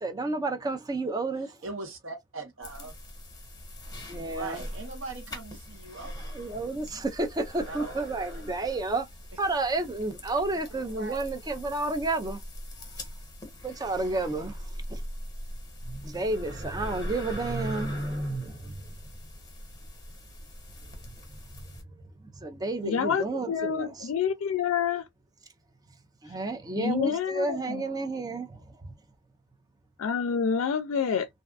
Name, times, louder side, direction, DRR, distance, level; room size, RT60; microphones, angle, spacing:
voice 1, 0.0-1.6 4.0-4.6 6.3-9.1 9.4-12.4 13.6-15.0 15.8-18.9 21.1-21.2 21.5-21.6 22.2-24.1 26.2-28.9, right 2 dB, 20° right, 0.5 m, -31 dB
voice 2, 1.6-2.9 4.0-6.1 7.6-8.0 9.3-9.4 10.7-11.2, right 3 dB, 70° right, 1.0 m, -41 dB
sound 1, 2.6-21.8, equal, 20° left, 1.1 m, -42 dB
voice 3, 22.8-25.1 26.8-27.8 30.0-31.3, left 7 dB, 90° left, 0.4 m, -28 dB
2.6 x 2.3 x 2.3 m
head